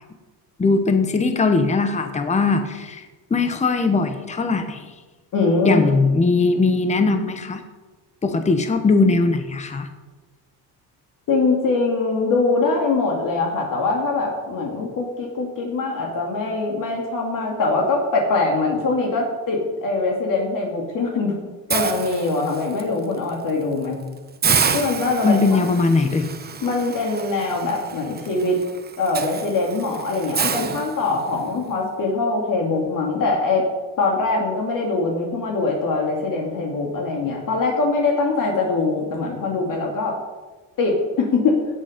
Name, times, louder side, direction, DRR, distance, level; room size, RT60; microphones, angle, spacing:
voice 1, 0.6-4.9 5.6-7.6 8.2-9.9 25.2-26.3, left 3 dB, 15° left, 7 dB, 1.1 m, -20 dB
voice 2, 5.3-5.8 11.3-21.3 21.7-24.0 24.7-25.4 26.6-28.6 29.0-33.6 34.0-40.2 40.8-41.6, left 3 dB, 55° left, -1 dB, 2.7 m, -22 dB
Hiss, 21.7-22.8 23.3-23.5 23.8-23.9 24.4-31.5, right 6 dB, 25° right, 1.0 m, -28 dB
17.0 x 8.5 x 5.2 m, 1.3 s
cardioid pair, 130°, 39 cm